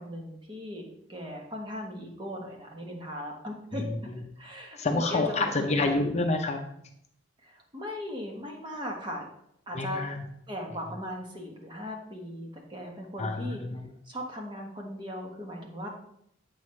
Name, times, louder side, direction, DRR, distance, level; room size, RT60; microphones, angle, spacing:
voice 1, 0.0-4.1 4.4-5.7 7.4-9.3 9.7-10.0 10.5-13.6 14.1-15.9, left 1 dB, 25° right, 0 dB, 1.4 m, -38 dB
voice 2, 4.8-6.6 9.7-10.2 13.2-13.9, left 2 dB, 35° left, 4 dB, 0.6 m, -28 dB
8.2 x 6.5 x 3.2 m, 0.72 s
head